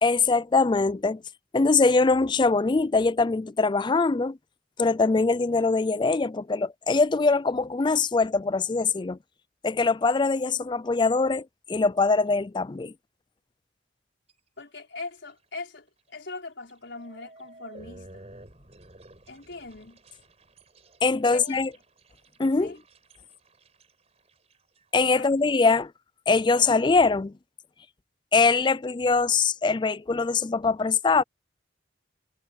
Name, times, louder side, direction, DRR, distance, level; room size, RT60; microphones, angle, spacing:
voice 1, 0.0-1.2 1.5-4.4 4.8-9.2 9.6-12.9 21.0-21.7 22.4-22.7 24.9-25.9 26.3-27.3 28.3-31.2, left 4 dB, 25° left, 0.4 m, -22 dB
sound 1, 14.3-14.6 15.0-15.4 15.8-15.9 16.7-25.8, right 1 dB, 35° right, 4.7 m, -52 dB
voice 2, 14.6-15.8 16.1-18.1 19.3-20.0 21.3-21.6 22.6-22.8 25.1-25.3, left 3 dB, 60° left, 5.0 m, -40 dB
head